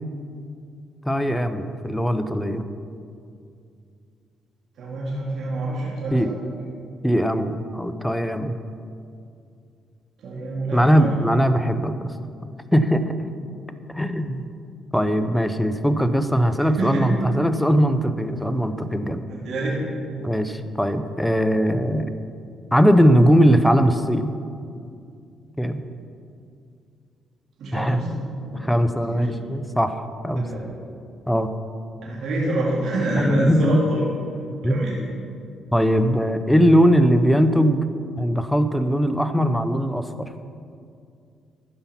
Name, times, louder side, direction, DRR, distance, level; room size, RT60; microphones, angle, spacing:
voice 1, 1.0-2.6 6.1-6.3 7.0-8.6 10.7-12.1 12.7-13.2 13.9-14.5 14.9-19.2 20.2-22.1 22.7-24.4 25.6-25.8 27.7-28.0 28.5-30.5 31.3-31.5 33.2-33.8 34.6-34.9 35.7-37.8 38.2-40.3, equal, 5° left, 9 dB, 0.6 m, -20 dB
voice 2, 4.8-6.3 10.2-11.1 16.8-17.0 19.4-19.8 27.6-28.2 28.4-29.3 30.4-30.6 32.1-34.1 34.3-35.0, right 2 dB, 70° right, -6 dB, 2.4 m, -27 dB
13.0 x 5.7 x 5.7 m, 2.4 s
cardioid pair, 90°, 0 cm